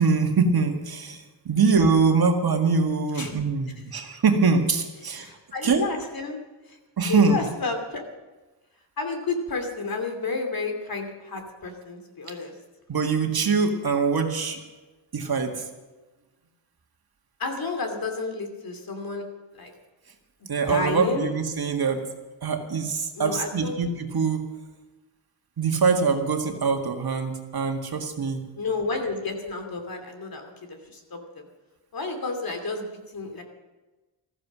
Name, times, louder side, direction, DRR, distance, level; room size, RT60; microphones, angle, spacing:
voice 1, 0.0-5.3 5.6-5.8 7.0-7.4 12.9-14.6 15.1-15.6 20.5-22.0 22.4-24.5 25.6-28.4, right 4 dB, 50° right, 3 dB, 2.0 m, -23 dB
voice 2, 5.0-6.4 6.7-6.8 7.1-8.0 9.0-12.5 17.4-19.2 19.5-19.7 20.7-21.3 23.1-23.8 28.6-31.2 31.9-33.4, left 3 dB, 50° left, 5 dB, 2.8 m, -31 dB
15.0 x 14.5 x 6.2 m, 1.2 s
cardioid pair, 95°, 47 cm